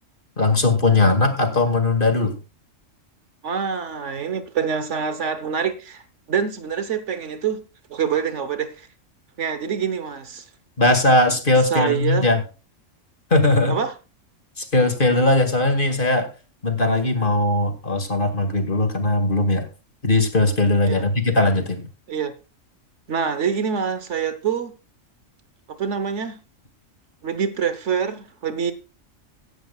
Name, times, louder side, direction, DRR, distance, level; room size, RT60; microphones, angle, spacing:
voice 1, 0.4-2.4 10.8-12.4 13.3-13.8 14.6-16.3 16.6-19.7 20.0-21.9, left 2 dB, 40° left, 2.2 m, -19 dB
voice 2, 3.4-6.0 6.3-7.6 7.9-8.9 9.4-10.5 11.7-12.3 13.7-13.9 20.8-21.0 22.1-22.3 23.1-24.7 25.7-26.4 27.2-28.7, right 7 dB, 65° right, 1.3 m, -25 dB
16.0 x 11.0 x 2.3 m
omnidirectional pair, 1.4 m